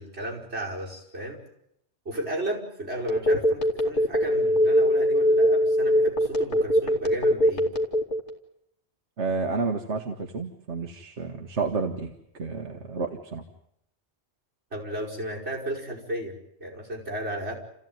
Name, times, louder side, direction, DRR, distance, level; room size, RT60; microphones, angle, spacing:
voice 1, 0.0-1.4 2.1-7.7 14.7-17.5, right 1 dB, 70° right, -3 dB, 5.7 m, -34 dB
Telephone, 3.1-8.3, equal, 50° left, 2.6 m, -21 dB
voice 2, 9.2-12.1 12.4-13.4, right 4 dB, 90° right, 5 dB, 1.7 m, -30 dB
29.5 x 15.0 x 9.5 m, 0.79 s
omnidirectional pair, 1.1 m